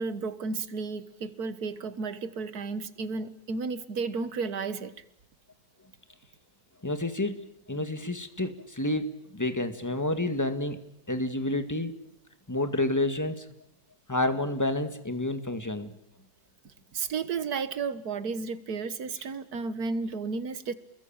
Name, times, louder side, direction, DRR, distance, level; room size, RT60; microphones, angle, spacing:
voice 1, 0.0-4.9 16.9-20.7, right 4 dB, 70° right, 13 dB, 1.9 m, -33 dB
voice 2, 6.8-10.8 11.1-11.9 12.5-13.4 14.1-15.9, left 1 dB, 10° left, 8 dB, 1.9 m, -29 dB
29.0 x 21.5 x 8.9 m, 0.76 s
omnidirectional pair, 1.7 m